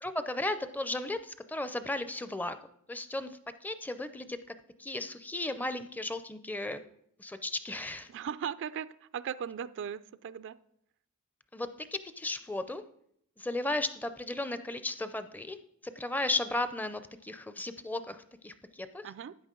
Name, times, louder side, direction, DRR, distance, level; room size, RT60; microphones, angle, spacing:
voice 1, 0.0-2.6 2.9-4.4 4.8-6.8 7.2-8.1 11.5-12.8 13.4-15.6 15.8-19.0, left 2 dB, 10° left, 0.4 m, -35 dB
voice 2, 8.1-10.6 19.0-19.4, right 8 dB, 55° right, 0.3 m, -38 dB
13.0 x 9.3 x 3.7 m
head